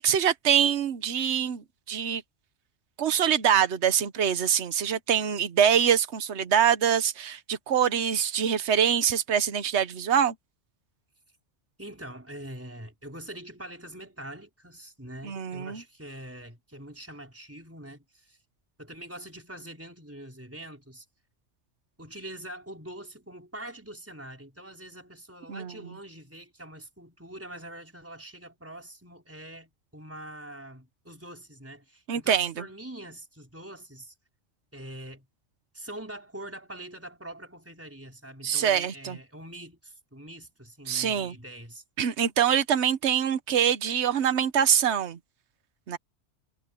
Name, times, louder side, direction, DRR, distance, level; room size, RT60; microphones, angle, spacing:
voice 1, 0.0-2.2 3.0-10.3 15.2-15.8 25.5-25.7 32.1-32.5 38.4-39.2 40.9-41.3 42.0-45.2 45.9-46.0, right 8 dB, 75° right, 1.2 m, -24 dB
voice 2, 11.8-18.4 18.8-21.0 22.0-34.1 34.7-35.3 35.7-41.8, right 1 dB, 10° right, 4.8 m, -44 dB
omnidirectional pair, 1.2 m